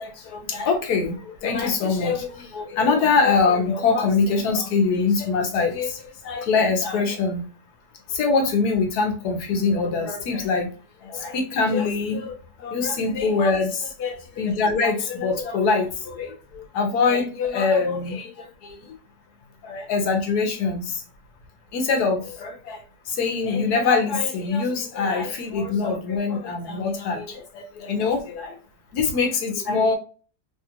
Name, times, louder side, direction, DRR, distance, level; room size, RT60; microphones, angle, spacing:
voice 1, 0.0-7.4 8.1-10.7 11.0-12.3 12.6-18.8 19.6-21.0 21.7-22.8 23.1-28.6 28.9-30.0, left 4 dB, 70° left, 4 dB, 1.3 m, -23 dB
3.4 x 2.4 x 2.8 m, 0.37 s
omnidirectional pair, 1.8 m